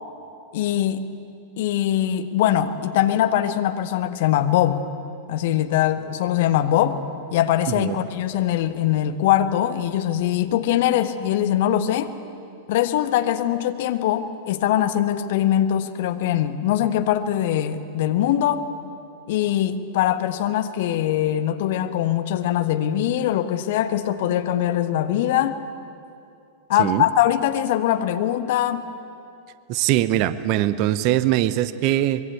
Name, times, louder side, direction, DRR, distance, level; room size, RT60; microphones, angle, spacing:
voice 1, 0.5-1.1 1.6-4.8 5.3-7.0 7.3-12.1 12.7-18.7 19.3-25.6 26.7-28.9, left 11 dB, 50° left, 10 dB, 1.3 m, -22 dB
voice 2, 29.7-32.2, right 13 dB, 45° right, 15 dB, 0.9 m, -21 dB
24.0 x 22.0 x 8.4 m, 2.6 s
figure-of-eight pair, 90°, 0 cm